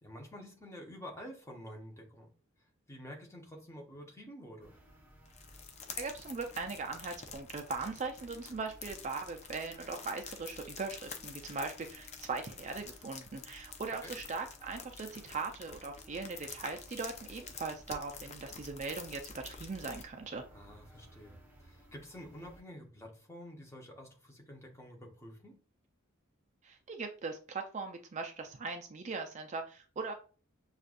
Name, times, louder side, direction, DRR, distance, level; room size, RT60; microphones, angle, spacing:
voice 1, 0.0-2.3 2.9-4.7 14.0-14.1 20.5-25.6, equal, 15° left, 1 dB, 0.9 m, -49 dB
sound 1, 4.6-22.6, equal, 10° right, 1.0 m, -59 dB
sound 2, 5.3-20.0, left 6 dB, 35° left, 0.5 m, -49 dB
voice 2, 5.9-20.4 26.6-30.1, right 4 dB, 35° right, 5 dB, 0.4 m, -40 dB
6.5 x 2.4 x 2.5 m, 0.38 s
head